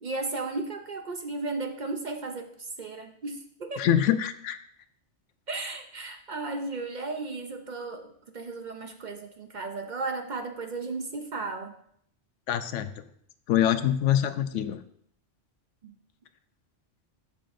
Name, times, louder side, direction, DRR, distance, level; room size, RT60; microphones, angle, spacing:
voice 1, 0.0-3.9 5.5-11.7 15.8-15.9, right 3 dB, 50° right, 5 dB, 0.6 m, -35 dB
voice 2, 3.8-4.6 12.5-12.9 13.5-14.8, left 10 dB, 85° left, 12 dB, 0.9 m, -24 dB
12.5 x 5.8 x 2.6 m, 0.67 s
omnidirectional pair, 1.2 m